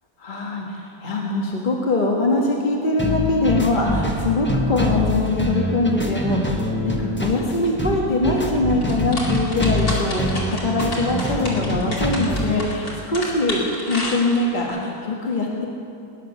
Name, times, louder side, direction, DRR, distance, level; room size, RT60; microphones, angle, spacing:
voice 1, 0.2-6.5 6.8-15.7, left 2 dB, 30° left, -2 dB, 1.7 m, -22 dB
sound 1, 3.0-12.6, left 1 dB, 10° left, 1.1 m, -25 dB
sound 2, 8.8-14.6, left 1 dB, 75° left, 3.4 m, -30 dB
19.5 x 10.5 x 7.0 m, 2.6 s
omnidirectional pair, 1.6 m